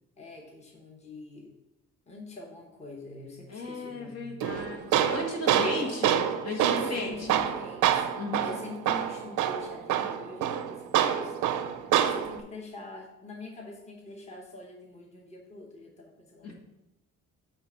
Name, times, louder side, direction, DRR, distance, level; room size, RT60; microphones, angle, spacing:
voice 1, 0.2-1.5 2.1-4.3 5.4-5.9 6.5-8.0 8.4-11.5 11.7-16.5, left 2 dB, 20° left, 0 dB, 1.1 m, -44 dB
voice 2, 3.5-6.2 6.4-7.4 8.1-8.6 16.4-16.5, left 3 dB, 55° left, 1 dB, 1.7 m, -36 dB
Tools, 4.4-12.4, right 10 dB, 90° right, 0.6 m, -27 dB
7.8 x 3.4 x 6.0 m, 0.94 s
cardioid pair, 90°, 30 cm